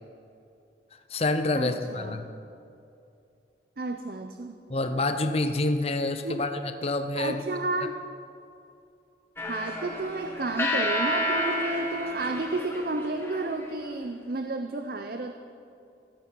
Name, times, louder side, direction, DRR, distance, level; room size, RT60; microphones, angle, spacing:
voice 1, 0.9-2.3 4.7-7.4, left 2 dB, 35° left, 8 dB, 0.6 m, -27 dB
voice 2, 1.5-2.2 3.8-4.6 6.2-6.4 7.1-8.0 9.5-15.3, right 2 dB, 55° right, 7 dB, 0.6 m, -31 dB
sound 1, 9.4-13.6, equal, 15° left, 1.3 m, -30 dB
16.0 x 12.5 x 4.6 m, 2.6 s
head